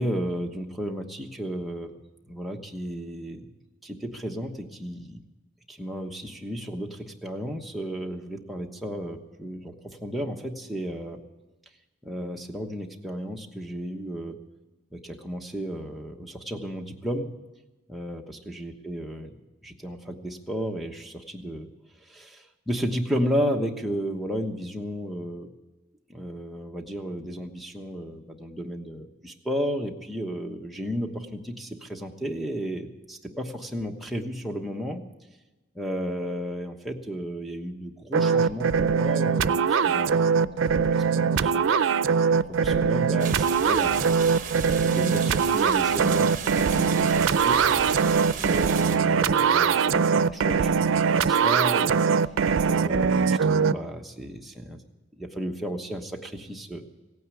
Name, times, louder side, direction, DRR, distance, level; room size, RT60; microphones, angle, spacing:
voice 1, 0.0-1.9 2.3-3.5 3.8-5.2 5.7-11.2 12.0-14.4 14.9-17.3 17.9-19.3 19.6-21.7 22.1-25.5 26.1-35.0 35.7-41.7 42.5-44.1 44.7-46.3 46.6-47.6 48.4-51.9 52.7-54.8 55.2-56.8, equal, ahead, 0 dB, 1.1 m, -33 dB
sound 1, 38.1-53.7, right 6 dB, 85° right, 0.4 m, -22 dB
sound 2, 43.2-49.0, right 6 dB, 40° right, 1.2 m, -35 dB
16.5 x 9.4 x 8.4 m, 1.1 s
head